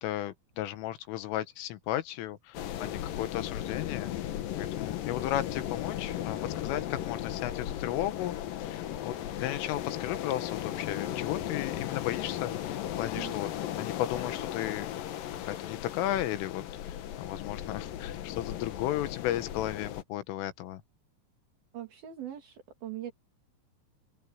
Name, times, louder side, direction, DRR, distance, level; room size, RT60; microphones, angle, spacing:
voice 1, 0.0-4.3 4.6-13.5 13.8-14.9 15.5-20.8, left 13 dB, 90° left, 3.9 m, -35 dB
sound 1, 2.5-20.0, left 11 dB, 70° left, 2.2 m, -36 dB
voice 2, 21.7-23.1, right 12 dB, 55° right, 4.7 m, -41 dB
open air
omnidirectional pair, 5.6 m